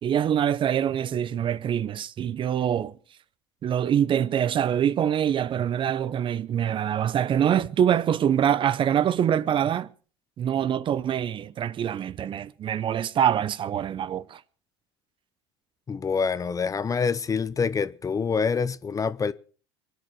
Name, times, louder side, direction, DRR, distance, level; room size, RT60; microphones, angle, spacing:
voice 1, 0.0-2.9 3.6-9.9 10.4-14.4, right 9 dB, 40° right, 0.7 m, -24 dB
voice 2, 15.9-19.3, left 5 dB, 25° left, 0.8 m, -26 dB
23.5 x 10.0 x 4.7 m
hypercardioid pair, 80°, 14 cm